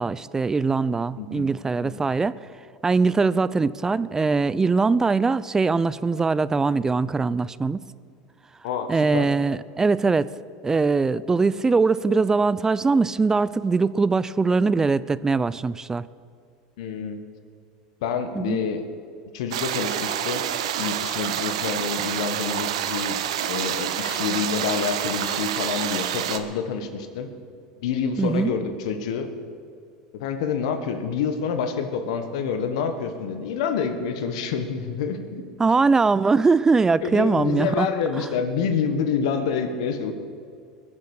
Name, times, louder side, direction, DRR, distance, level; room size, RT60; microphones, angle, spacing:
voice 1, 0.0-2.4 2.8-7.8 8.9-10.3 10.6-16.1 18.3-18.6 28.2-28.5 35.6-37.9, right 4 dB, 15° right, 17 dB, 0.5 m, -21 dB
voice 2, 1.2-1.5 1.8-2.0 8.6-9.3 16.8-17.2 18.0-18.8 19.3-23.2 23.5-27.3 27.8-29.3 30.1-35.4 37.0-40.1, left 6 dB, 75° left, 8 dB, 1.5 m, -27 dB
sound 1, 19.5-26.4, right 10 dB, 80° right, 0.9 m, -27 dB
21.5 x 7.6 x 6.5 m, 2.3 s
hypercardioid pair, 95°, 3 cm